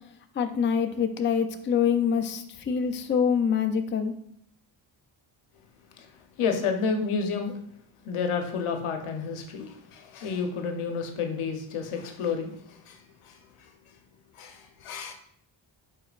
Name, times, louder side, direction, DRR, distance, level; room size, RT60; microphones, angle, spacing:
voice 1, 0.4-4.1, left 7 dB, 25° left, 7 dB, 0.4 m, -25 dB
voice 2, 6.4-7.6 8.0-13.7 14.3-15.1, left 5 dB, 80° left, 5 dB, 0.8 m, -31 dB
4.9 x 4.3 x 2.4 m, 0.68 s
cardioid pair, 80°, 49 cm